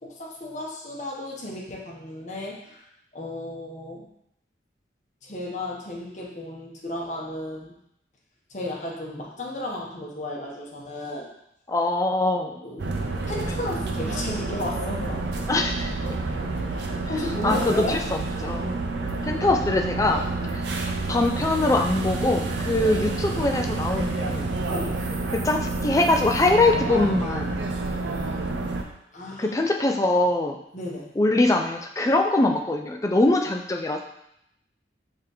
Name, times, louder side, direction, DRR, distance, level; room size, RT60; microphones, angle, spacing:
voice 1, 0.0-2.8 3.1-4.1 5.2-7.7 8.5-11.3 12.6-12.9 13.3-15.2 16.7-18.0 20.4-20.5 24.7-25.0 29.1-29.6 30.7-31.1, left 1 dB, 40° left, -3 dB, 0.9 m, -34 dB
voice 2, 11.7-12.6 15.5-16.1 17.4-18.0 18.4-18.8 19.2-20.3 21.1-24.5 25.3-27.6 29.4-30.6 31.2-34.0, left 2 dB, 15° left, 3 dB, 0.3 m, -23 dB
sound 1, 12.8-28.8, right 3 dB, 70° right, 0.5 m, -29 dB
Piano, 25.9-28.5, left 4 dB, 5° right, 1.6 m, -45 dB
4.9 x 3.5 x 3.0 m, 0.78 s
head